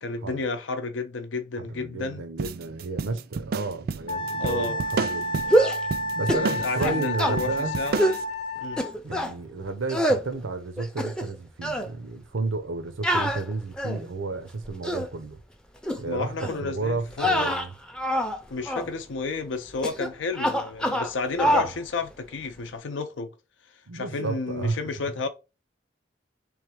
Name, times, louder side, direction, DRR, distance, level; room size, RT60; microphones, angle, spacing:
voice 1, 0.0-2.3 4.4-4.8 6.2-8.0 8.6-8.8 16.0-17.5 18.5-23.3 23.9-25.3, left 4 dB, 75° left, 0.6 m, -31 dB
voice 2, 1.6-5.4 6.1-7.7 9.0-15.4 16.0-17.7 21.4-21.7 23.9-24.8, right 3 dB, 90° right, 0.7 m, -32 dB
sound 1, 2.4-8.2, right 5 dB, 50° right, 0.3 m, -31 dB
Wind instrument woodwind instrument, 4.1-8.9, left 1 dB, 30° left, 0.8 m, -30 dB
sound 2, 5.4-5.9 6.3-6.5 6.8-7.4 8.0-8.2 8.8-9.3 9.9-10.2 10.8-11.4 11.6-11.9 13.0-14.1 14.6-15.1 15.8-16.0 16.4-16.6 17.1-18.4 18.7-18.9 19.8-20.1 20.4-21.1 21.4-21.7, equal, 5° left, 0.5 m, -25 dB
3.6 x 3.2 x 4.7 m
head